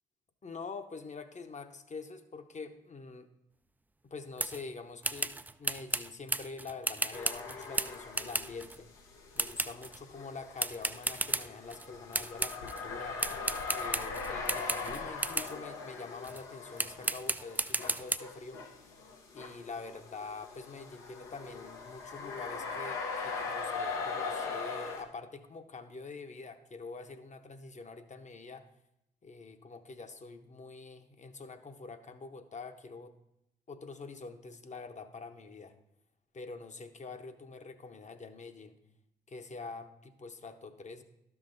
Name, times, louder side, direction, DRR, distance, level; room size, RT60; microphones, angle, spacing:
voice 1, 0.4-3.3 4.1-8.9 9.3-13.2 13.7-18.6 19.3-28.7 29.2-33.1 33.7-35.8 36.3-38.8 39.3-41.0, left 4 dB, 35° left, 8 dB, 0.9 m, -45 dB
sound 1, 4.4-4.6 5.0-8.8 9.4-10.0 10.6-11.9 12.1-12.8 13.2-15.6 16.2-16.4 16.8-18.2, right 2 dB, 10° right, 0.4 m, -34 dB
sound 2, 7.1-8.6 9.0-25.0, left 4 dB, 85° left, 0.9 m, -40 dB
12.5 x 5.9 x 2.6 m, 0.82 s
hypercardioid pair, 40°, 20 cm